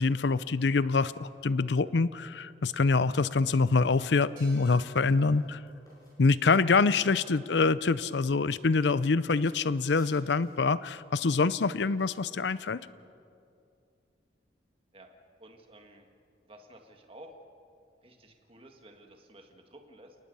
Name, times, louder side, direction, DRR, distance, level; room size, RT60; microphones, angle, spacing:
voice 1, 0.0-5.6 6.2-12.8, left 4 dB, 75° left, 17 dB, 0.6 m, -25 dB
sound 1, 3.8-7.1 7.8-8.0 8.6-9.0 9.4-10.7, left 1 dB, 20° left, 6.8 m, -57 dB
sound 2, 4.4-7.7, right 2 dB, 50° right, 4.2 m, -60 dB
voice 2, 15.4-16.1 16.4-17.3 18.0-20.2, right 1 dB, 30° right, 4 dB, 1.9 m, -53 dB
29.5 x 19.0 x 5.5 m, 2.5 s
head